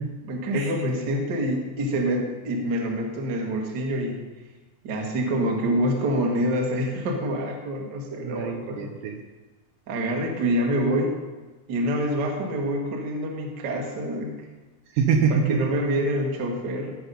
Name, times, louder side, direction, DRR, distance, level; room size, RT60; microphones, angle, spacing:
voice 1, 0.3-4.2 4.8-8.9 9.9-11.2 11.7-14.4 15.5-17.0, equal, 50° right, 0 dB, 1.4 m, -26 dB
voice 2, 8.2-9.2 14.9-15.7, right 6 dB, 80° right, 3 dB, 2.1 m, -25 dB
15.0 x 6.0 x 5.4 m, 1.2 s
omnidirectional pair, 4.3 m